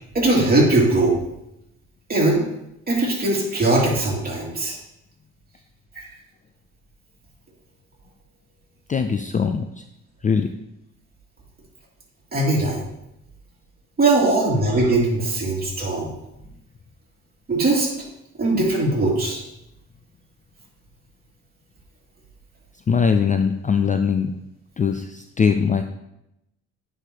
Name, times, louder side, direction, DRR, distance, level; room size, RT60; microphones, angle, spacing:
voice 1, 0.1-1.2 2.1-2.5 2.9-4.8 6.0-6.1 12.3-12.8 14.0-16.1 17.5-17.9 18.4-19.4, right 2 dB, 30° right, -4 dB, 2.6 m, -20 dB
voice 2, 8.9-9.7 10.2-10.5 22.9-24.3 24.8-25.8, left 6 dB, 25° left, 7 dB, 0.4 m, -21 dB
9.7 x 5.0 x 2.9 m, 0.85 s
cardioid pair, 90°, 30 cm